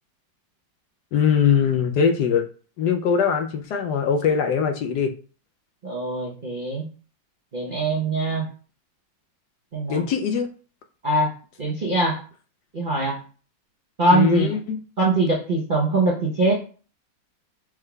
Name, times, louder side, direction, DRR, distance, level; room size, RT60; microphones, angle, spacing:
voice 1, 1.1-2.4 2.8-5.1 9.9-10.5 14.1-14.8, left 7 dB, 70° left, 5 dB, 1.1 m, -21 dB
voice 2, 5.8-6.9 7.5-8.4 9.7-10.0 11.0-11.3 11.6-12.2 12.7-13.2 14.0-14.5 15.0-16.6, right 2 dB, 45° right, -5 dB, 0.6 m, -22 dB
6.4 x 3.6 x 2.3 m, 0.39 s
omnidirectional pair, 2.0 m